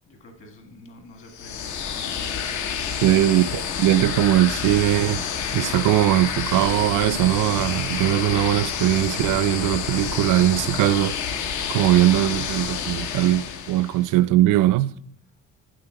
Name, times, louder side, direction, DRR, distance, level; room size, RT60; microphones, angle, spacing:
voice 1, 0.1-2.4 3.0-3.5, left 2 dB, 45° left, 1.8 m, -48 dB
sound 1, 1.3-14.1, left 7 dB, 70° left, 0.9 m, -29 dB
voice 2, 3.0-5.2 5.5-11.2 11.7-14.9, right 14 dB, 90° right, 0.5 m, -20 dB
9.4 x 7.7 x 4.6 m
cardioid pair, 170°, 30 cm